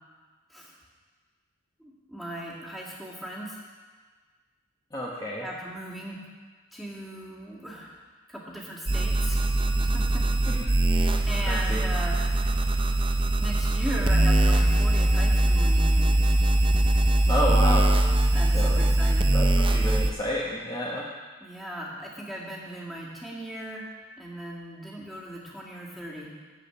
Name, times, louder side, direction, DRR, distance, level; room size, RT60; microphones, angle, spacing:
voice 1, 1.8-3.6 5.4-6.2 6.7-8.0 8.3-9.5 9.8-10.6 10.9-12.3 13.4-16.2 18.3-19.3 21.4-23.9 24.2-26.3, right 1 dB, ahead, -6 dB, 2.1 m, -38 dB
voice 2, 4.9-5.5 10.5-10.8 11.5-11.8 17.3-17.9 18.5-18.9 19.3-21.1, equal, 20° left, -5 dB, 1.0 m, -30 dB
sound 1, 8.9-20.1, right 1 dB, 25° right, 0.6 m, -22 dB
13.5 x 5.0 x 8.6 m, 1.5 s
head